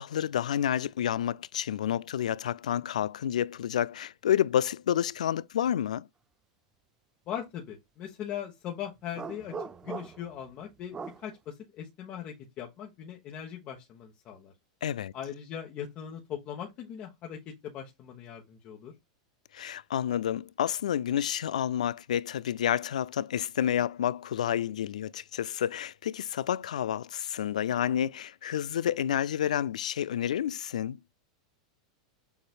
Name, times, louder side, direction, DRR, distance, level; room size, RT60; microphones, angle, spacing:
voice 1, 0.0-6.1 14.8-15.1 19.5-31.0, left 10 dB, 90° left, 0.3 m, -29 dB
voice 2, 7.3-9.5 9.8-14.5 15.1-18.9, left 9 dB, 40° left, 1.2 m, -40 dB
sound 1, 9.1-10.4 10.9-11.3, right 5 dB, 20° right, 0.4 m, -39 dB
7.0 x 3.2 x 2.3 m
hypercardioid pair, 125°, 4 cm